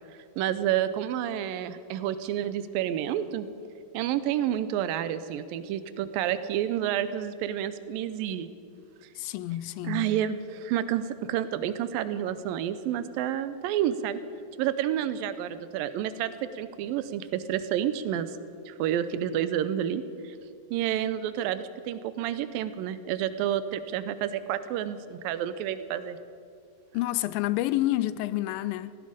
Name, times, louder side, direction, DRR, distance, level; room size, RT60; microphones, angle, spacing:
voice 1, 0.4-3.5 3.9-8.5 9.8-14.2 14.6-18.3 18.7-20.4 20.7-26.2, right 10 dB, 85° right, 2.3 m, -29 dB
voice 2, 9.2-10.1 26.9-29.0, left 15 dB, 80° left, 2.2 m, -29 dB
16.5 x 16.0 x 5.1 m
omnidirectional pair, 4.2 m